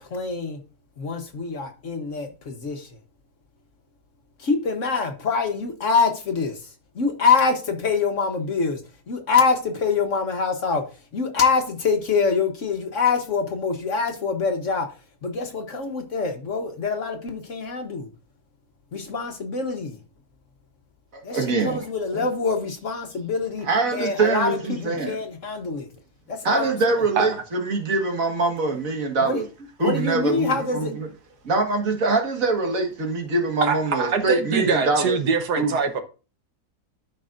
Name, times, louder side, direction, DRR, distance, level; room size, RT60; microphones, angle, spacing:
voice 1, 0.0-0.6 1.0-2.9 4.4-6.6 6.9-8.8 9.1-10.8 11.1-14.9 15.2-18.1 18.9-20.0 21.2-23.7 23.9-25.9 26.3-26.8 29.2-29.4 29.8-30.9, left 5 dB, 50° left, 1.3 m, -25 dB
voice 2, 21.3-21.9 22.1-22.3 23.7-25.2 26.4-29.4 29.8-31.1 31.4-35.2 35.6-35.8, right 3 dB, 55° right, 2.0 m, -23 dB
voice 3, 33.6-36.0, right 5 dB, 75° right, 1.6 m, -23 dB
13.0 x 5.3 x 2.5 m
omnidirectional pair, 1.8 m